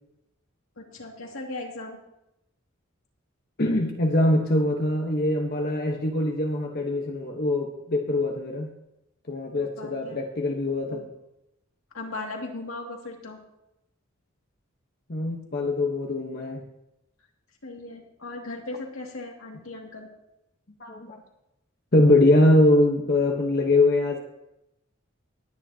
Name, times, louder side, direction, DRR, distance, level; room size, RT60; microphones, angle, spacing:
voice 1, 0.8-2.0 9.5-10.2 11.9-13.4 17.6-20.1, left 2 dB, 85° left, 1 dB, 2.3 m, -37 dB
voice 2, 3.6-8.7 9.3-11.0 15.1-16.6 20.8-21.2 21.9-24.2, left 1 dB, 50° left, 1 dB, 1.1 m, -23 dB
19.0 x 9.8 x 2.8 m, 0.89 s
head